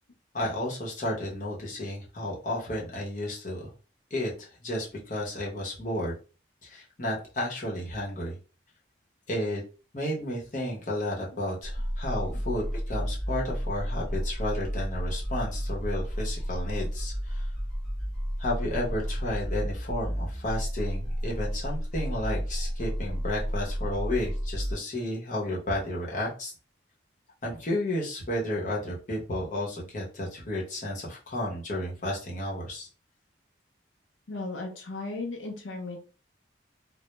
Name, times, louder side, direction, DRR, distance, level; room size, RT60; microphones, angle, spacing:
voice 1, 0.3-3.7 4.1-6.1 6.6-8.4 9.3-9.6 9.9-17.4 18.4-26.5 27.4-32.9, left 1 dB, 40° left, -3 dB, 0.7 m, -32 dB
sound 1, 11.6-24.7, equal, ahead, 0.8 m, -32 dB
voice 2, 34.3-36.0, left 3 dB, 85° left, 1 dB, 0.5 m, -36 dB
2.1 x 2.0 x 2.9 m, 0.35 s
head